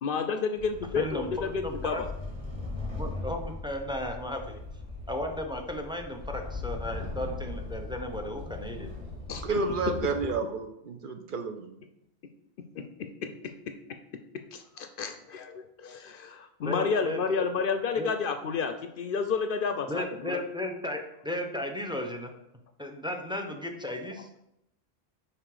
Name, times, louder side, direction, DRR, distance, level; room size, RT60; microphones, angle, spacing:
voice 1, 0.0-2.1 9.3-9.5 12.8-13.5 14.5-20.4, left 5 dB, 60° left, 8 dB, 0.7 m, -31 dB
sound 1, 0.6-10.3, left 2 dB, 25° right, 2.4 m, -39 dB
voice 2, 1.0-2.0 3.0-4.6 5.1-8.9 16.6-17.4 18.0-18.1 19.9-22.3 22.8-24.3, left 1 dB, 5° right, 4 dB, 0.5 m, -35 dB
voice 3, 9.4-11.8, right 4 dB, 55° right, 6 dB, 0.7 m, -31 dB
5.8 x 4.8 x 4.9 m, 0.82 s
omnidirectional pair, 1.1 m